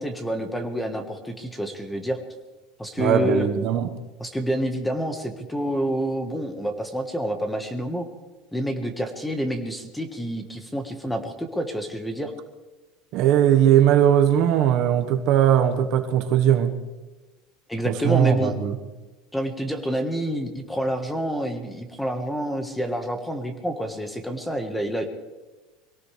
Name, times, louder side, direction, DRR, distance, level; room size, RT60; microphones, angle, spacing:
voice 1, 0.0-2.2 2.8-3.5 4.2-8.1 8.5-12.3 17.7-18.5 19.3-25.2, equal, 5° left, 6 dB, 1.5 m, -28 dB
voice 2, 3.0-3.9 13.1-16.7 17.8-18.8, right 10 dB, 55° right, 6 dB, 1.4 m, -19 dB
24.0 x 17.5 x 3.4 m, 1.2 s
supercardioid pair, 145°, 0 cm